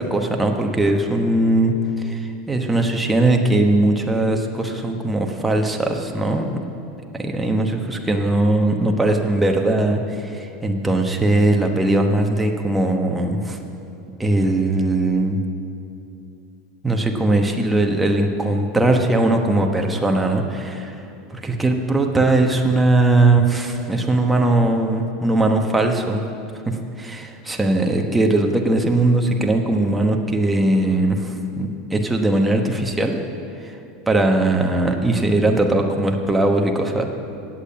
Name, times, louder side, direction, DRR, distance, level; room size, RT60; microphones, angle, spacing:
voice 1, 0.0-6.6 7.1-13.6 14.2-15.4 16.8-21.0 21.3-26.2 26.7-33.2 33.6-33.8 34.1-37.1, right 2 dB, 10° right, 2 dB, 1.0 m, -20 dB
8.6 x 8.0 x 8.5 m, 2.7 s
supercardioid pair, 125°, 0 cm